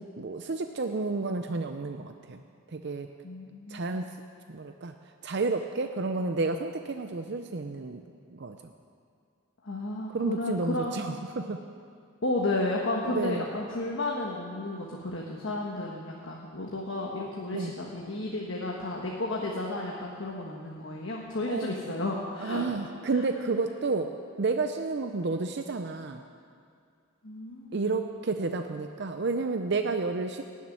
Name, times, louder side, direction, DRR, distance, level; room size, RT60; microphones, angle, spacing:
voice 1, 0.0-2.4 2.7-3.1 3.7-4.1 4.5-4.9 5.2-8.0 8.3-8.6 10.1-11.6 13.0-13.4 17.5-17.7 21.5-21.8 22.4-24.1 24.4-26.2 27.7-30.4, right 3 dB, 55° right, 6 dB, 0.6 m, -31 dB
voice 2, 3.2-3.8 9.6-11.2 12.2-22.6 23.1-23.2 27.2-28.0, left 2 dB, 65° left, -1 dB, 1.4 m, -33 dB
16.5 x 7.3 x 9.9 m, 2.3 s
head